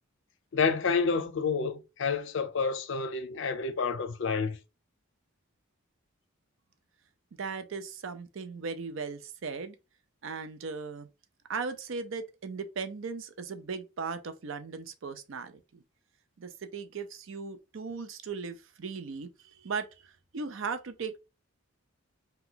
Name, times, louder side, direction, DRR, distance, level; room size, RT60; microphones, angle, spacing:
voice 1, 0.5-4.6, left 5 dB, 55° left, 0.5 m, -29 dB
voice 2, 7.4-9.8 10.2-11.1 11.5-15.8 16.4-21.2, right 5 dB, 60° right, 0.5 m, -37 dB
2.9 x 2.2 x 3.8 m
head